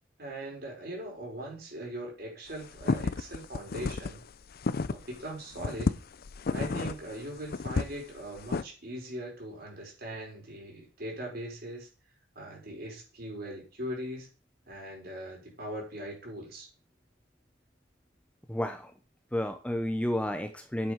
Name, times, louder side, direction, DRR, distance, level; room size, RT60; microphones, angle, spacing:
voice 1, 0.2-4.2 4.9-6.0 6.5-11.9 12.4-14.3 14.7-16.7, right 1 dB, 50° right, -1 dB, 5.1 m, -40 dB
sound 1, 2.5-5.2 5.5-8.6, left 3 dB, 50° left, 0.5 m, -31 dB
voice 2, 18.5-18.9 19.3-20.9, left 1 dB, 5° left, 7 dB, 0.7 m, -31 dB
9.5 x 7.6 x 5.2 m, 0.35 s
head